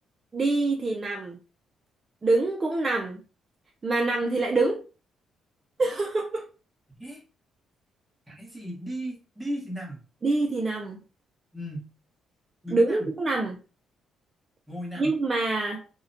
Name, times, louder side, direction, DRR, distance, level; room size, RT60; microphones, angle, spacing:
voice 1, 0.3-1.4 2.2-3.2 3.8-4.8 5.8-6.5 10.2-11.0 12.7-13.6 15.0-15.8, right 2 dB, 30° right, 0.3 m, -25 dB
voice 2, 8.3-10.0 11.5-11.9 12.6-13.1 14.7-15.2, equal, 5° right, 0.9 m, -36 dB
2.6 x 2.0 x 2.6 m
cardioid pair, 110°, 0 cm